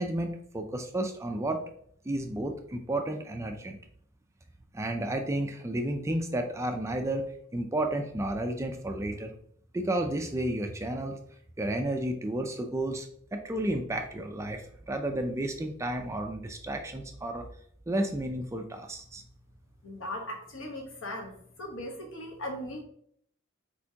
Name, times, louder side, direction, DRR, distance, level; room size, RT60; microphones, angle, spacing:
voice 1, 0.0-1.6 2.1-3.8 4.7-9.3 9.7-11.2 11.6-17.5 17.9-19.2, right 1 dB, 15° right, 5 dB, 0.3 m, -32 dB
voice 2, 19.8-21.3 21.6-22.8, left 1 dB, 65° left, 1 dB, 1.2 m, -38 dB
4.5 x 4.2 x 2.8 m, 0.65 s
head